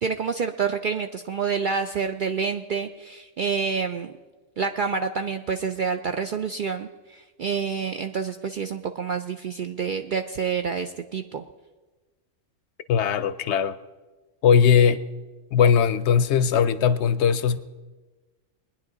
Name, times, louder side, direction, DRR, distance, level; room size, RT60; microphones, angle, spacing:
voice 1, 0.0-4.1 4.6-11.4, right 5 dB, 60° right, 6 dB, 0.5 m, -28 dB
voice 2, 12.9-13.7 14.4-15.0 15.5-17.6, left 7 dB, 70° left, 14 dB, 0.8 m, -19 dB
21.0 x 10.0 x 3.9 m, 1.2 s
omnidirectional pair, 1.3 m